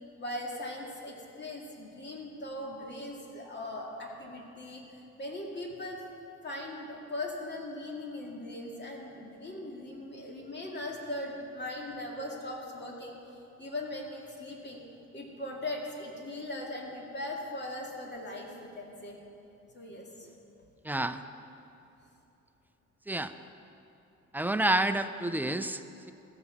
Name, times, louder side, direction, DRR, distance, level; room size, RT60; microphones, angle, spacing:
voice 1, 0.2-6.0 6.4-14.8 15.1-19.2 19.7-20.3, left 1 dB, 35° left, 0 dB, 2.2 m, -39 dB
voice 2, 20.8-21.2 23.1-23.3 24.3-26.1, right 1 dB, 5° right, 9 dB, 0.5 m, -29 dB
14.5 x 7.0 x 7.0 m, 2.8 s
cardioid pair, 90°, 30 cm